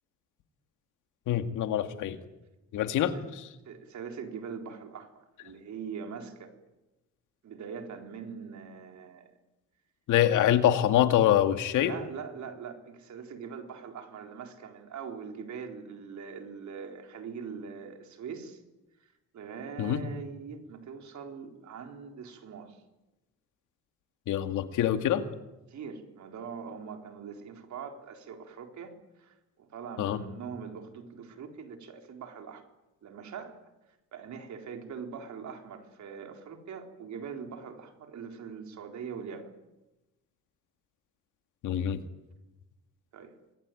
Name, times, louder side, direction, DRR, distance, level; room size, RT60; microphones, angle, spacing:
voice 1, 1.3-2.2 2.7-3.5 10.1-11.9 19.8-20.0 24.3-25.2 30.0-30.2 41.6-42.0, left 11 dB, 85° left, 8 dB, 2.2 m, -25 dB
voice 2, 2.8-3.3 3.7-5.1 5.4-6.5 7.4-9.3 11.8-18.6 19.0-22.8 25.7-32.6 33.0-33.6 34.1-39.5 43.1-43.3, right 6 dB, 70° right, 4 dB, 4.2 m, -42 dB
27.0 x 21.0 x 9.3 m, 1.0 s
cardioid pair, 90°, 30 cm